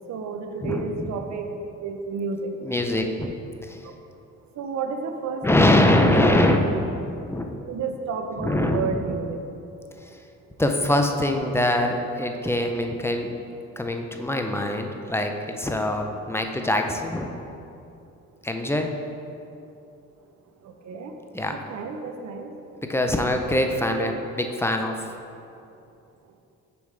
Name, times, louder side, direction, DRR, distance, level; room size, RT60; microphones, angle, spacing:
voice 1, 0.1-1.5 1.8-2.5 3.8-3.9 4.6-6.6 7.6-9.4 20.6-21.1 21.5-22.5 23.9-24.1, right 5 dB, 65° right, 5 dB, 0.7 m, -31 dB
voice 2, 0.6-1.1 2.6-3.3 3.6-3.8 5.4-7.5 8.4-9.0 10.0-10.1 10.6-13.3 13.8-17.3 18.4-18.9 21.3-21.6 22.9-25.0, left 1 dB, 10° left, 4 dB, 0.4 m, -23 dB
6.9 x 5.1 x 3.2 m, 2.7 s
cardioid pair, 90°, 30 cm